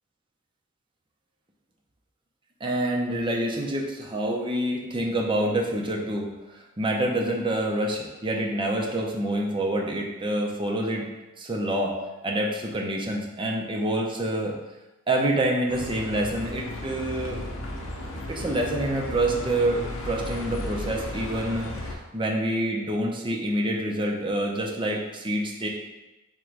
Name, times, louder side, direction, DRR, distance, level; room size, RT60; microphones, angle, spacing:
voice 1, 2.6-6.3 6.5-11.1 11.4-11.9 12.2-14.5 15.1-17.4 18.3-25.7, right 1 dB, 25° right, -1 dB, 0.6 m, -27 dB
Bus, 15.7-21.9, left 1 dB, 65° left, 0.7 m, -34 dB
3.7 x 3.0 x 4.6 m, 1.1 s
head